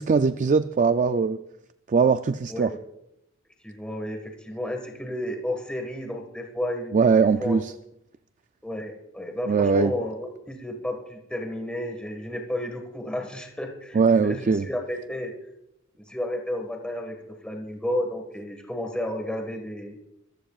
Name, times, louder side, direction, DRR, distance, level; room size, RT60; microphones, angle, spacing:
voice 1, 0.0-1.4 1.9-2.7 6.9-7.7 9.5-9.9 13.9-14.7, right 5 dB, 40° right, 11 dB, 0.4 m, -21 dB
voice 2, 3.6-6.9 7.4-7.6 8.6-15.3 16.1-20.0, left 1 dB, 5° left, 2 dB, 1.6 m, -32 dB
24.5 x 15.0 x 2.4 m, 0.81 s
head